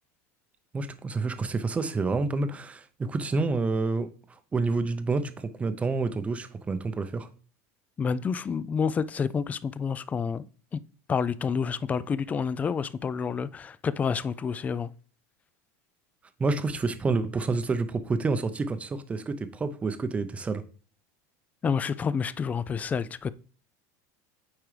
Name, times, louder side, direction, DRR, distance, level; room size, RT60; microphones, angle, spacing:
voice 1, 0.7-4.1 4.5-7.3 16.4-20.6, right 3 dB, 15° right, 0.6 m, -28 dB
voice 2, 8.0-10.8 11.1-14.9 21.6-23.3, left 6 dB, 20° left, 0.3 m, -29 dB
8.7 x 4.6 x 3.3 m
supercardioid pair, 135°, 8 cm